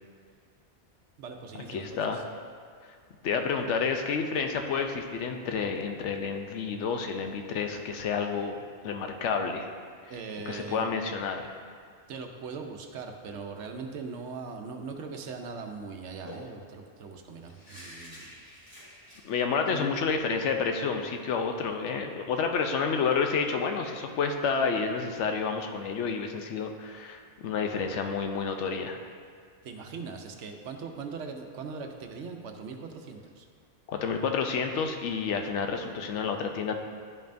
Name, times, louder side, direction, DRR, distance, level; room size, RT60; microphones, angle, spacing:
voice 1, 1.2-2.2 10.1-10.9 12.1-18.3 19.7-19.9 29.6-33.5, right 4 dB, 80° right, 4 dB, 1.0 m, -40 dB
voice 2, 1.7-2.2 3.2-9.7 10.5-11.5 19.2-29.0 33.9-36.8, left 5 dB, 80° left, 5 dB, 0.9 m, -30 dB
sound 1, 15.2-15.3 15.6-15.7 16.3-19.2, left 1 dB, 20° left, 2.0 m, -48 dB
10.5 x 5.3 x 2.6 m, 2.1 s
omnidirectional pair, 1.2 m